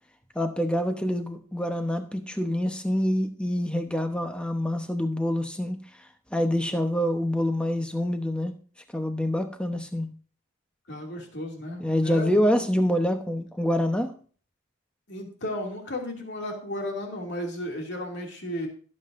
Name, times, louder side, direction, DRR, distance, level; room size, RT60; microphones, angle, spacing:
voice 1, 0.3-5.8 6.3-8.5 8.9-10.1 11.8-14.1, equal, 5° left, 6 dB, 0.9 m, -26 dB
voice 2, 10.9-12.6 15.1-18.7, left 1 dB, 55° left, 1 dB, 2.5 m, -34 dB
18.5 x 7.7 x 2.6 m, 0.43 s
head